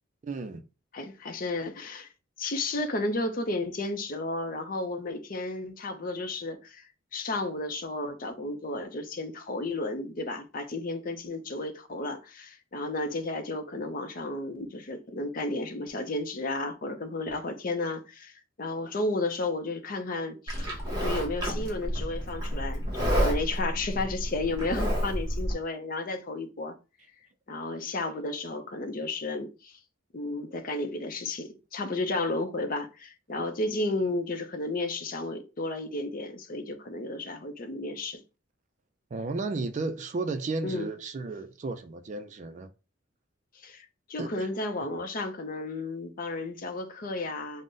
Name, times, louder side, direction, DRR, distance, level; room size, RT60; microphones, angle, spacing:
voice 1, 0.2-0.6 39.1-42.7 44.2-44.5, right 3 dB, 40° right, 0.3 m, -33 dB
voice 2, 0.9-2.1 2.4-6.9 7.1-26.8 27.5-29.8 30.1-38.2 40.6-40.9 43.6-47.6, left 2 dB, 45° left, 0.6 m, -33 dB
Livestock farm animals working animals, 20.5-25.5, equal, 20° right, 1.2 m, -30 dB
3.8 x 2.1 x 3.7 m
head